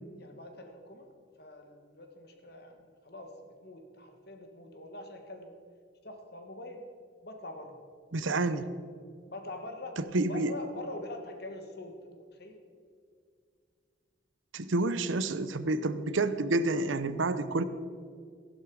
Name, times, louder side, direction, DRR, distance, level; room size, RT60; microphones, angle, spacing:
voice 1, 0.2-1.1 1.4-5.5 6.0-6.8 7.2-7.8 8.5-8.7 9.3-10.0 10.3-12.6, left 1 dB, 55° left, 4 dB, 1.8 m, -44 dB
voice 2, 8.1-8.7 10.0-10.5 14.5-17.6, right 2 dB, 80° right, 13 dB, 0.7 m, -29 dB
15.5 x 11.0 x 4.9 m, 2.2 s
head